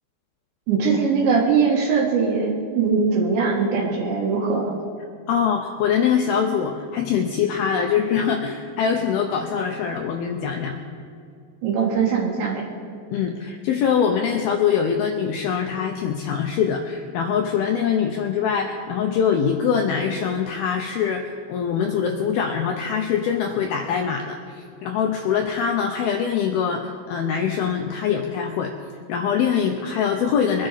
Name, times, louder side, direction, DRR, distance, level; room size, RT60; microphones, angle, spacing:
voice 1, 0.7-4.7 11.6-12.6, right 5 dB, 75° right, -4 dB, 3.7 m, -21 dB
voice 2, 5.3-10.8 13.1-28.7 29.1-30.7, left 7 dB, 85° left, 3 dB, 2.2 m, -23 dB
23.0 x 10.0 x 4.1 m, 2.4 s
omnidirectional pair, 5.2 m